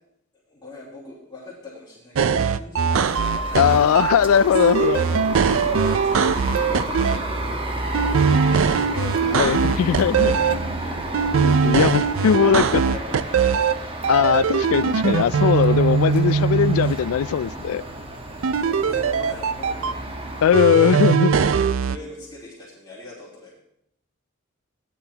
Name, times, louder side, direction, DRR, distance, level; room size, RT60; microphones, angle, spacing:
voice 1, 0.5-3.7 4.4-9.0 10.8-11.2 11.5-13.8 17.6-20.2 20.6-20.9 21.7-23.6, left 2 dB, 20° left, -9 dB, 3.1 m, -41 dB
sound 1, 2.2-4.1 4.5-7.2 7.9-10.5 11.1-13.7 14.0-16.9 18.4-19.9 20.5-22.0, right 6 dB, 65° right, 0.4 m, -21 dB
sound 2, 2.9-20.6, right 1 dB, 25° right, 1.1 m, -31 dB
voice 2, 3.5-5.0 8.9-10.6 11.4-12.8 14.1-17.8 20.4-21.3, left 8 dB, 80° left, 18 dB, 0.3 m, -19 dB
16.5 x 10.5 x 2.9 m, 0.76 s
head